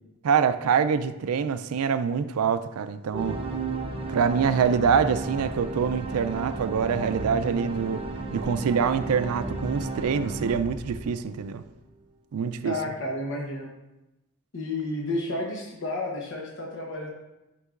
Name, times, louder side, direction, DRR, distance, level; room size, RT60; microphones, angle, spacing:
voice 1, 0.2-3.4 4.1-8.0 8.3-11.6 12.3-12.8, right 6 dB, 80° right, 0.4 m, -25 dB
sound 1, 3.1-11.6, right 3 dB, 25° right, 0.7 m, -33 dB
voice 2, 12.6-13.7 14.5-17.1, left 2 dB, 60° left, 0.9 m, -31 dB
9.6 x 5.3 x 2.5 m
head